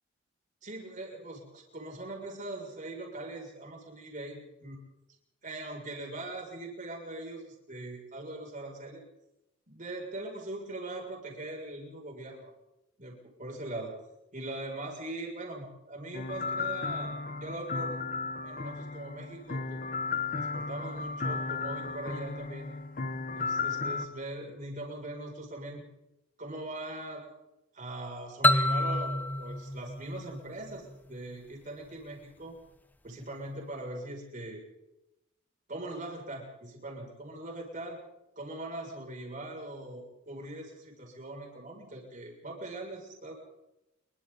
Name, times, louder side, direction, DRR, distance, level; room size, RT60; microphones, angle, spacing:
voice 1, 0.6-4.8 5.4-9.0 9.7-12.5 13.0-14.0 14.3-18.0 18.4-19.8 20.3-22.7 23.3-25.8 26.4-27.2 27.7-32.6 33.0-34.6 35.7-38.0 38.4-43.3, right 2 dB, 40° right, 0 dB, 7.0 m, -41 dB
sound 1, 16.1-24.1, left 4 dB, 45° left, 1.1 m, -34 dB
sound 2, 28.4-31.1, left 1 dB, 10° left, 0.7 m, -28 dB
28.0 x 24.0 x 4.2 m, 0.91 s
head